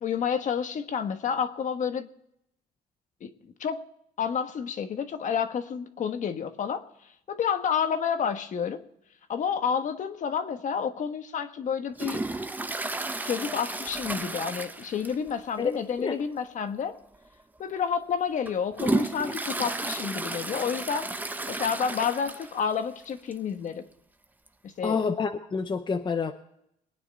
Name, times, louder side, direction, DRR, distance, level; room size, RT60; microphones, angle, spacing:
voice 1, 0.0-2.1 3.2-3.8 4.2-6.8 7.3-8.8 9.3-12.2 13.2-16.9 17.6-21.1 21.5-23.8 24.6-25.0, left 7 dB, 50° left, 8 dB, 1.3 m, -30 dB
Toilet flush, 12.0-15.4 15.7-15.8 16.2-16.3 17.1-17.3 17.8-22.7 23.0-23.1 23.3-23.4 24.5-24.6, right 2 dB, 10° right, 0.8 m, -32 dB
voice 2, 15.6-16.2 24.8-26.3, left 5 dB, 25° left, 6 dB, 0.8 m, -28 dB
22.0 x 9.3 x 4.2 m, 0.76 s
cardioid pair, 110°, 17 cm